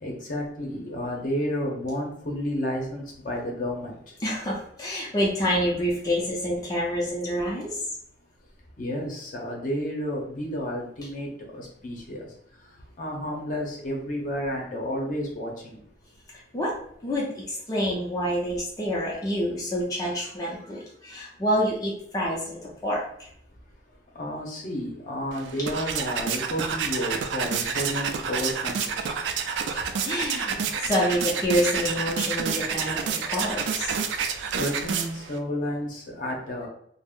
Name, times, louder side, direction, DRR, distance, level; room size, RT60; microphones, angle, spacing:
voice 1, 0.0-4.0 8.8-12.3 13.0-15.8 24.1-28.8 34.5-36.7, equal, 50° left, -1 dB, 0.7 m, -31 dB
voice 2, 4.2-7.8 16.5-16.7 17.0-23.3 29.7-33.9, equal, 20° left, -5 dB, 0.5 m, -27 dB
sound 1, 25.3-35.4, right 6 dB, 85° right, 0.3 m, -29 dB
2.5 x 2.0 x 3.6 m, 0.68 s
head